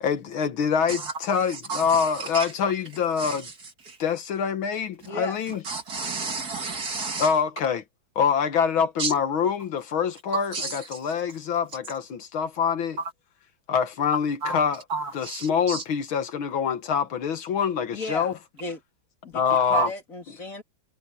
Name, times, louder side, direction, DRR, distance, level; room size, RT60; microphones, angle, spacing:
voice 1, 0.0-3.5 4.0-5.6 7.2-7.8 8.2-13.0 13.7-14.8 15.1-18.3 19.3-19.9, left 7 dB, 75° left, 2.1 m, -25 dB
voice 2, 1.5-2.5 3.2-3.5 3.9-4.0 5.7-7.3 9.0-9.1 10.3-11.0 14.4-14.6 14.9-15.8 19.7-19.9, right 4 dB, 50° right, 2.6 m, -31 dB
voice 3, 5.0-5.4 17.9-18.8 19.2-20.6, left 1 dB, 40° left, 3.6 m, -35 dB
omnidirectional pair, 2.2 m